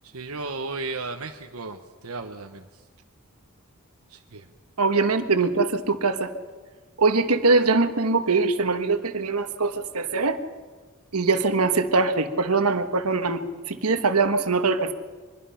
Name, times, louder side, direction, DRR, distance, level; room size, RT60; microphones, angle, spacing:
voice 1, 0.0-2.8 4.1-4.5, right 3 dB, 70° right, 4 dB, 1.1 m, -35 dB
voice 2, 4.8-6.3 7.0-10.4 11.1-14.9, right 3 dB, 90° right, 8 dB, 1.4 m, -22 dB
23.5 x 21.5 x 5.8 m, 1.4 s
head